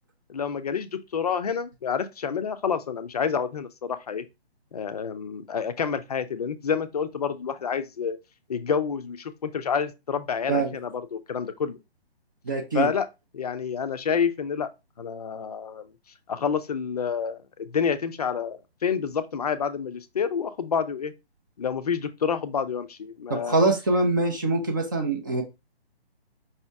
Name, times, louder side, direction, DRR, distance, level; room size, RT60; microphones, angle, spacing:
voice 1, 0.3-4.2 4.7-8.2 8.5-11.8 12.7-13.1 13.3-14.7 15.0-15.8 16.3-21.1 21.6-23.6, left 6 dB, 40° left, 0.5 m, -28 dB
voice 2, 12.5-12.9 23.3-25.4, right 3 dB, 20° right, 0.5 m, -24 dB
5.4 x 2.9 x 3.3 m
figure-of-eight pair, 140°, 32 cm